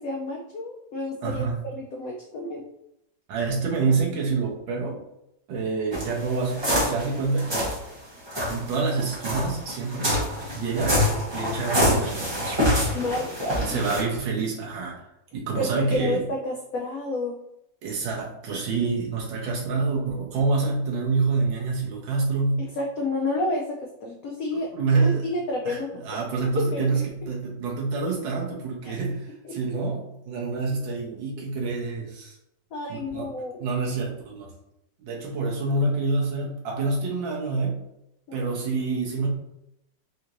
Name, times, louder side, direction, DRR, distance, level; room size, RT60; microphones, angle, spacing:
voice 1, 0.0-1.5 1.7-2.6 12.9-13.8 15.6-17.4 22.6-23.6 24.0-24.7 25.0-26.2 26.6-26.8 28.8-29.0 29.4-29.6 32.7-33.6 35.1-35.3, left 2 dB, 80° left, 0 dB, 0.7 m, -30 dB
voice 2, 1.2-1.6 3.3-5.0 5.5-7.7 8.5-10.2 10.6-11.0 11.3-12.6 13.6-15.1 15.3-16.2 17.8-22.6 24.5-25.2 25.7-32.4 32.9-33.3 33.6-34.5 35.0-37.8 38.3-39.3, right 4 dB, 85° right, -3 dB, 1.7 m, -27 dB
sound 1, 5.9-7.8 8.3-14.0, left 1 dB, 35° right, 0.4 m, -26 dB
4.2 x 2.9 x 2.5 m, 0.83 s
omnidirectional pair, 2.0 m